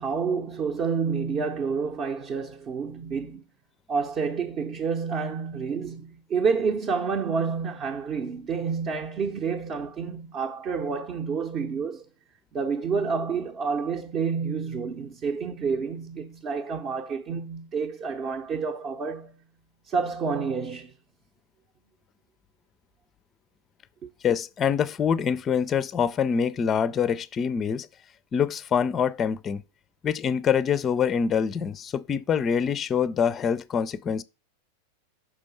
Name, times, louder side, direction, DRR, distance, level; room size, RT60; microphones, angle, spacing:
voice 1, 0.0-3.4 3.9-12.0 12.5-19.3 19.8-20.9, right 5 dB, 30° right, 0.8 m, -29 dB
voice 2, 24.2-27.9 28.3-29.6 30.0-34.2, left 7 dB, 25° left, 0.4 m, -25 dB
6.0 x 5.2 x 5.3 m
figure-of-eight pair, 90°, 0 cm